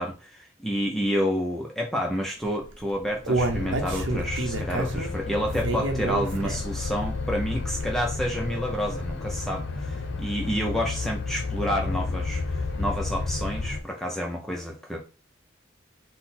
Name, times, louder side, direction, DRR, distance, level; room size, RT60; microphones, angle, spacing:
voice 1, 0.0-15.0, equal, ahead, 0.4 m, -29 dB
Human voice, 2.6-6.8 7.2-7.3 7.8-7.9, right 3 dB, 75° right, 0.7 m, -29 dB
sound 1, 3.3-13.8, left 3 dB, 65° left, 0.5 m, -31 dB
3.8 x 2.0 x 4.2 m
head